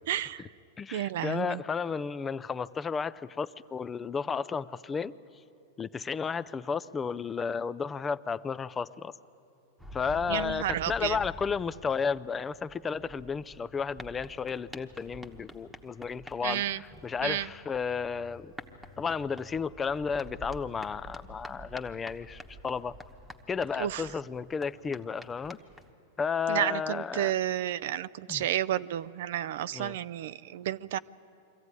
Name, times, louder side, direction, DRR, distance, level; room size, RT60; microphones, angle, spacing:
voice 1, 0.1-0.5 0.9-1.6 10.3-11.2 16.4-16.8 17.2-17.5 23.8-24.1 26.5-31.0, right 12 dB, 70° right, 16 dB, 0.4 m, -31 dB
voice 2, 0.8-5.1 5.8-9.1 9.9-18.5 19.0-23.0 23.5-25.6 26.2-27.3 28.3-28.5 29.7-30.0, left 6 dB, 20° left, 16 dB, 0.4 m, -33 dB
sound 1, 9.8-25.9, equal, ahead, 1.2 m, -48 dB
23.0 x 15.0 x 9.6 m, 2.9 s
hypercardioid pair, 125°, 0 cm